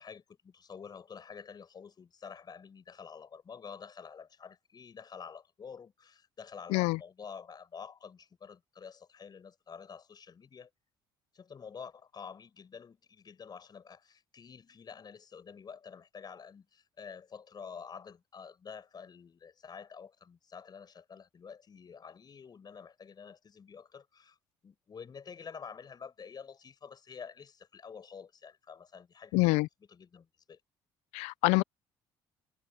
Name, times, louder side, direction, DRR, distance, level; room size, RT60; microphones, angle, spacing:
voice 1, 0.0-10.7 11.3-24.4 24.6-29.6 29.9-30.6, left 6 dB, 40° left, 4.9 m, -48 dB
voice 2, 29.3-29.7 31.1-31.6, left 24 dB, 85° left, 0.4 m, -26 dB
supercardioid pair, 85°, 11 cm